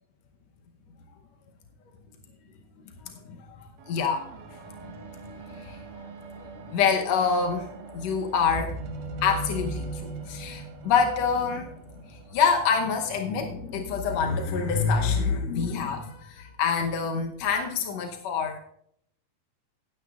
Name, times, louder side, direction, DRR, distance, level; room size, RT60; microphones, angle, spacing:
voice 1, 3.0-4.8 5.2-5.8 6.3-7.7 7.9-11.7 12.1-18.6, left 6 dB, 80° left, 4 dB, 1.5 m, -27 dB
sound 1, 3.8-13.3 14.1-14.2, right 2 dB, 65° right, 2.6 m, -40 dB
18.0 x 9.5 x 2.4 m, 0.68 s
omnidirectional pair, 4.3 m